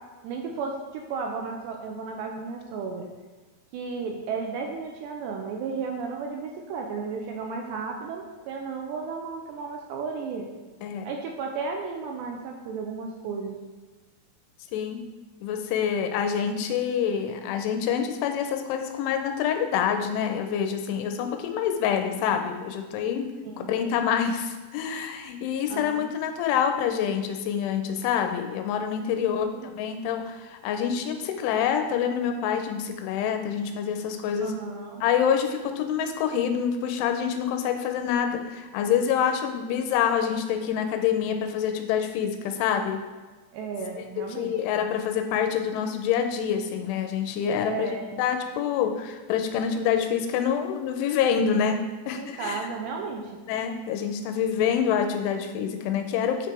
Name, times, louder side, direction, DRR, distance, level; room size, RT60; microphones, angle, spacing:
voice 1, 0.2-3.1 3.7-10.5 11.0-13.6 23.5-23.7 25.7-26.2 29.2-29.7 34.4-35.0 43.5-44.5 47.7-48.1 51.5-51.6 52.1-53.4, right 5 dB, 80° right, 2 dB, 2.6 m, -34 dB
voice 2, 14.7-15.1 15.4-23.3 23.7-29.5 29.7-34.6 35.0-43.0 44.2-52.7 53.5-56.5, left 8 dB, 85° left, 6 dB, 3.1 m, -26 dB
9.2 x 6.8 x 4.5 m, 1.3 s
omnidirectional pair, 5.6 m